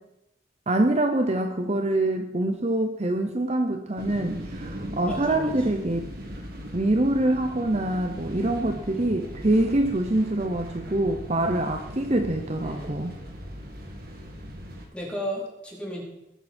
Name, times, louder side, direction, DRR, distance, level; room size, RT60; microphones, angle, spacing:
voice 1, 0.7-6.0 6.7-13.1, right 1 dB, 35° right, 5 dB, 0.9 m, -25 dB
sound 1, 4.0-14.9, equal, 55° right, 2.3 m, -39 dB
voice 2, 5.0-5.5 12.6-13.2 14.9-16.0, equal, 5° left, -5 dB, 4.4 m, -34 dB
20.5 x 9.1 x 4.5 m, 0.86 s
head